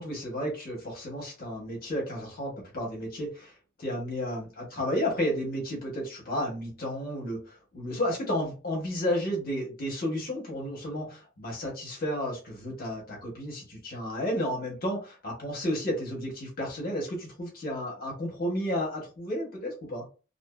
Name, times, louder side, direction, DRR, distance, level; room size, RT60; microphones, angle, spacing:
voice 1, 0.0-3.5 3.8-20.0, equal, 45° left, -2 dB, 1.0 m, -32 dB
2.6 x 2.5 x 2.2 m, 0.34 s
head